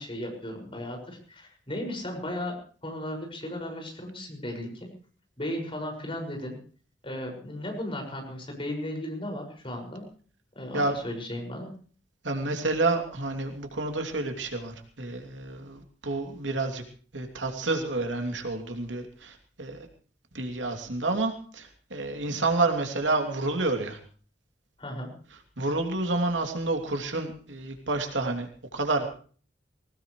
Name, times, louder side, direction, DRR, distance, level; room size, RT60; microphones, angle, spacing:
voice 1, 0.0-4.9 5.4-6.6 7.0-10.0 10.5-11.7 24.8-25.1, left 1 dB, 30° left, 2 dB, 6.1 m, -35 dB
voice 2, 12.2-16.8 17.1-19.9 20.3-24.0 25.6-29.1, right 2 dB, 90° right, 4 dB, 2.9 m, -29 dB
20.5 x 19.0 x 3.3 m, 0.42 s
head